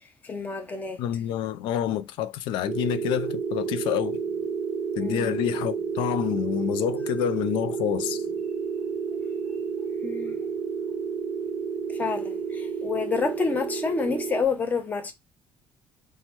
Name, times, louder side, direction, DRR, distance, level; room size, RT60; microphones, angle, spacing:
voice 1, 0.2-1.0 5.0-5.3 10.0-10.4 11.9-15.1, left 4 dB, 20° left, 0.7 m, -29 dB
voice 2, 1.0-4.2 5.0-8.2, left 11 dB, 85° left, 0.4 m, -28 dB
sound 1, 2.7-14.4, right 6 dB, 20° right, 0.4 m, -30 dB
4.4 x 2.2 x 4.4 m
cardioid pair, 170°, 8 cm